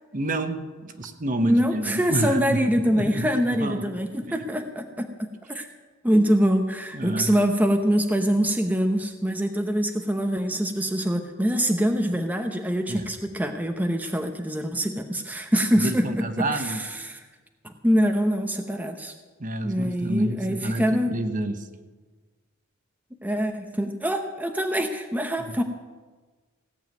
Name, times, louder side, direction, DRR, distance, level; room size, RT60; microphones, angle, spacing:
voice 1, 0.1-2.6 2.8-3.3 3.6-4.0 6.9-7.3 12.9-13.1 15.8-16.8 19.4-21.7, right 1 dB, 40° right, 8 dB, 1.1 m, -29 dB
voice 2, 1.4-5.7 6.0-17.2 17.6-19.1 19.6-21.1 23.2-25.6, equal, 10° right, 5 dB, 0.8 m, -24 dB
17.0 x 7.3 x 9.3 m, 1.3 s
head